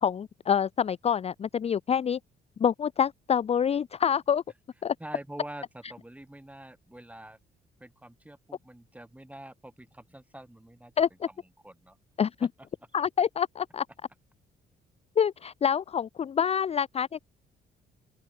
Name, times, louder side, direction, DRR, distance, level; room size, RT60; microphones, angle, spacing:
voice 1, 0.0-2.2 2.6-4.4 4.8-4.9 11.0-11.1 12.2-12.5 12.9-13.8 15.2-17.2, left 8 dB, 30° left, 0.4 m, -26 dB
voice 2, 5.0-7.4 7.8-10.9 11.3-12.0, right 1 dB, 5° right, 4.4 m, -46 dB
open air
cardioid pair, 90°, 20 cm